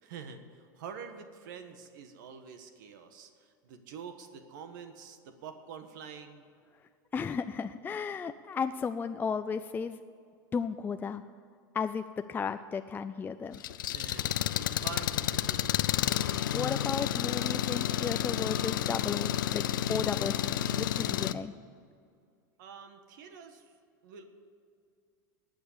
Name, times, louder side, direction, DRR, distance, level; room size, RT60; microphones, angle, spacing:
voice 1, 0.0-6.4 13.8-15.8 22.6-23.6 24.0-24.2, right 6 dB, 70° right, 7 dB, 1.4 m, -46 dB
voice 2, 7.1-10.0 10.5-11.2 11.7-13.6 16.2-19.6 19.9-21.5, left 5 dB, 20° left, 9 dB, 0.4 m, -34 dB
Engine, 13.5-21.3, left 11 dB, 85° left, 0.5 m, -30 dB
18.5 x 6.6 x 8.5 m, 2.3 s
hypercardioid pair, 110°, 11 cm